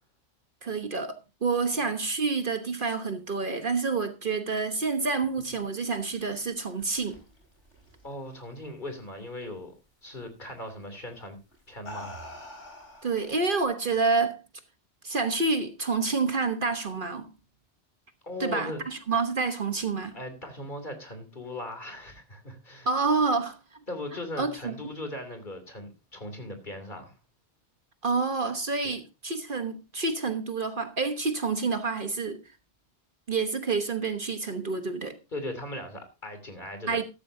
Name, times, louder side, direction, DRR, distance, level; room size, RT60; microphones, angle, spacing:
voice 1, 0.6-7.2 13.0-14.4 15.0-17.3 18.4-20.2 22.8-23.6 24.4-24.7 28.0-32.4 33.3-35.2 36.9-37.0, right 4 dB, 50° right, 1.3 m, -28 dB
sound 1, 5.8-8.6 9.0-9.4 10.7-10.9 11.5-13.6, left 1 dB, 85° left, 5.8 m, -46 dB
voice 2, 8.0-9.7 10.0-11.4 11.7-12.2 18.2-18.8 20.1-22.9 23.9-27.2 35.3-37.0, left 1 dB, 45° left, 3.2 m, -38 dB
14.0 x 13.5 x 2.7 m
omnidirectional pair, 1.2 m